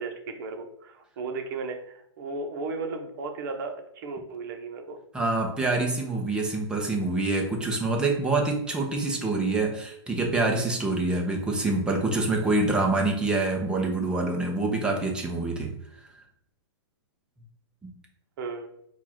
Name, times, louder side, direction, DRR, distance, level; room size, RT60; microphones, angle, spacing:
voice 1, 0.0-5.0 18.4-18.7, right 3 dB, 45° right, 5 dB, 0.9 m, -35 dB
voice 2, 5.1-15.7 17.8-17.9, right 2 dB, 5° right, 0 dB, 0.6 m, -26 dB
4.5 x 2.4 x 4.3 m, 0.74 s
hypercardioid pair, 155°, 15 cm